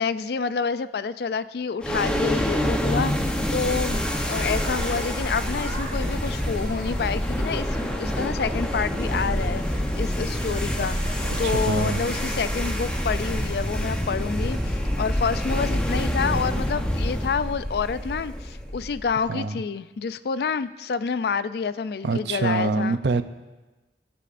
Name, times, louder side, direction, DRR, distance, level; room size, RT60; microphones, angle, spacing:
voice 1, 0.0-23.0, left 5 dB, 60° left, 15 dB, 0.3 m, -28 dB
sound 1, 1.8-19.2, equal, 5° left, 0.8 m, -27 dB
sound 2, 3.6-14.9, equal, 25° left, 4.1 m, -37 dB
voice 2, 11.4-12.1 19.3-19.6 22.0-23.2, right 3 dB, 70° right, 11 dB, 0.5 m, -25 dB
23.0 x 8.3 x 2.6 m, 1.2 s
head